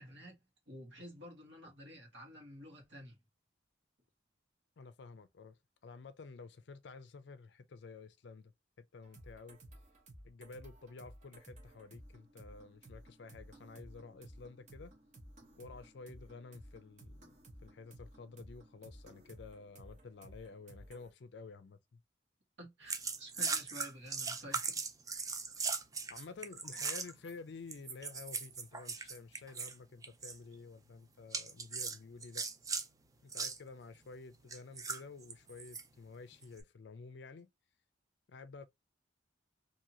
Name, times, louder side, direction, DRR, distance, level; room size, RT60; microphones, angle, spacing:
voice 1, 0.0-3.2 22.6-24.8, equal, 60° right, 1.3 m, -51 dB
voice 2, 4.8-5.6 5.8-9.6 10.2-14.9 15.6-22.0 25.6-25.7 26.1-32.5 33.2-37.5 38.3-38.6, left 4 dB, 60° left, 0.4 m, -51 dB
sound 1, 9.0-21.1, right 1 dB, 40° right, 1.0 m, -56 dB
sound 2, 22.9-27.3 27.7-29.7 30.0-30.4 31.3-32.9 33.3-33.6 34.5-35.8 36.4-36.6, right 5 dB, 20° right, 0.3 m, -39 dB
2.8 x 2.7 x 2.6 m
head